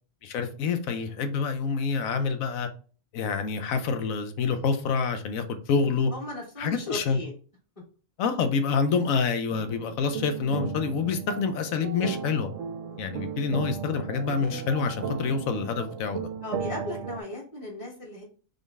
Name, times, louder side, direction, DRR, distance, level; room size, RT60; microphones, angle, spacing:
voice 1, 0.2-2.7 3.1-6.1 6.6-7.2 8.2-12.5 13.0-16.3, left 5 dB, 85° left, 1.1 m, -27 dB
voice 2, 6.1-7.3 12.9-13.2 16.4-18.2, left 2 dB, 25° left, 1.6 m, -37 dB
sound 1, 9.5-17.2, right 6 dB, 70° right, 0.9 m, -35 dB
3.8 x 3.7 x 3.4 m
omnidirectional pair, 1.4 m